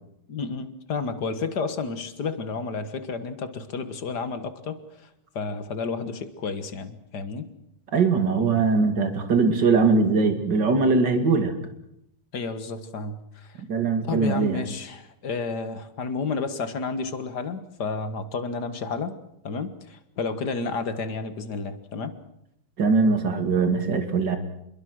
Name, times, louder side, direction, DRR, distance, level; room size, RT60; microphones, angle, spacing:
voice 1, 0.3-4.8 5.4-7.5 12.3-13.6 14.0-19.1 19.4-22.2, left 4 dB, 55° left, 11 dB, 2.1 m, -31 dB
voice 2, 7.9-11.5 13.7-14.6 22.8-24.4, right 4 dB, 55° right, 7 dB, 3.0 m, -21 dB
27.0 x 22.0 x 6.3 m, 0.78 s
omnidirectional pair, 2.2 m